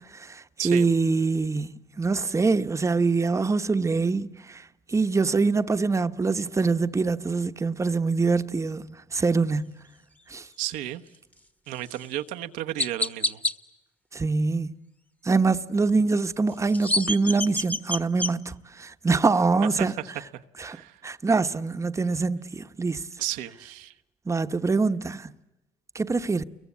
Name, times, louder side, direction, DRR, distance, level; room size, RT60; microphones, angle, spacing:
voice 1, 0.1-9.7 10.3-10.5 14.1-14.8 15.2-19.9 20.6-20.8 21.0-23.0 24.3-25.3 25.9-26.4, right 4 dB, 20° right, 1.1 m, -24 dB
voice 2, 10.6-11.0 11.7-13.4 19.8-20.1 20.6-21.0 23.2-23.9, right 14 dB, 85° right, 1.2 m, -33 dB
Chirp tweet, 11.9-12.0 12.8-13.5 16.5-18.3, left 2 dB, 10° left, 1.4 m, -27 dB
29.0 x 23.0 x 8.5 m
supercardioid pair, 85°, 13 cm